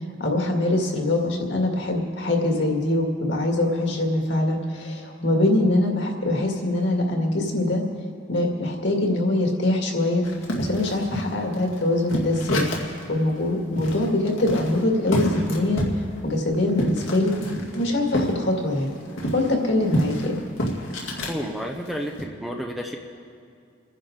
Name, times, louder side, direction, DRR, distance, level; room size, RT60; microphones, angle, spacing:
voice 1, 0.2-7.8 8.3-10.2 10.6-12.7 13.1-15.8 16.2-17.4 17.7-18.9 19.3-20.4, left 2 dB, 65° left, 1 dB, 2.2 m, -23 dB
sound 1, 10.2-13.0 13.4-13.5 13.8-18.3 18.6-21.4 21.8-22.2, equal, 85° left, 2.1 m, -29 dB
voice 2, 21.3-23.0, equal, ahead, 1 dB, 0.8 m, -31 dB
28.0 x 10.5 x 3.9 m, 2.3 s
head